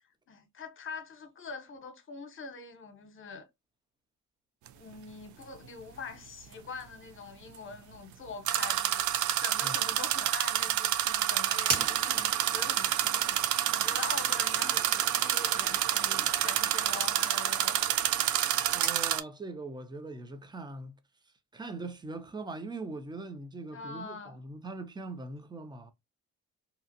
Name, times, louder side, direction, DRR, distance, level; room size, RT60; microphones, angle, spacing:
voice 1, 0.3-3.5 4.7-17.9 23.7-24.4, left 5 dB, 40° left, 0.9 m, -44 dB
sound 1, 4.7-4.8 8.5-19.2, right 12 dB, 75° right, 0.4 m, -28 dB
sound 2, 11.6-19.0, right 4 dB, 50° right, 1.5 m, -40 dB
voice 2, 18.7-21.0 21.5-25.9, right 3 dB, 15° right, 0.6 m, -41 dB
2.9 x 2.4 x 2.6 m
cardioid pair, 90°, 30 cm